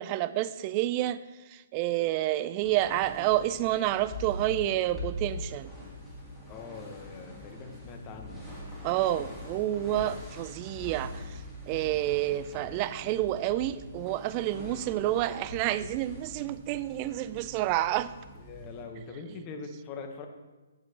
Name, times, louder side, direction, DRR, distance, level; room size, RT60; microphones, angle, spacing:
voice 1, 0.0-5.7 8.8-18.1, right 14 dB, 30° right, 0.3 m, -29 dB
sound 1, 2.6-18.8, left 1 dB, ahead, 1.9 m, -43 dB
voice 2, 6.5-8.4 18.5-20.3, left 4 dB, 25° left, 1.0 m, -42 dB
7.7 x 7.4 x 2.9 m
figure-of-eight pair, 135°, 0 cm